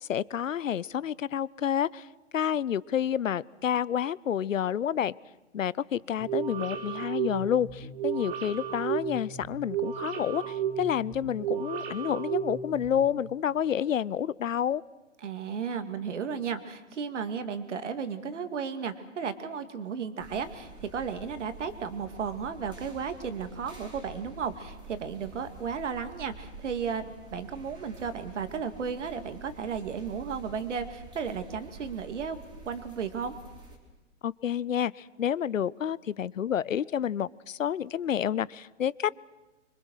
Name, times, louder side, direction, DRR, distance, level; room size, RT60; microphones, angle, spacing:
voice 1, 0.0-2.1 2.3-5.1 5.5-14.8 34.2-39.1, left 9 dB, 85° left, 22 dB, 0.7 m, -29 dB
sound 1, 6.2-13.1, right 9 dB, 45° right, 3.5 m, -33 dB
voice 2, 15.2-32.4 32.6-33.3, right 6 dB, 65° right, 9 dB, 2.5 m, -34 dB
sound 2, 20.2-33.8, right 3 dB, 10° right, 3.6 m, -48 dB
25.5 x 24.5 x 6.4 m, 1.1 s
hypercardioid pair, 140°, 38 cm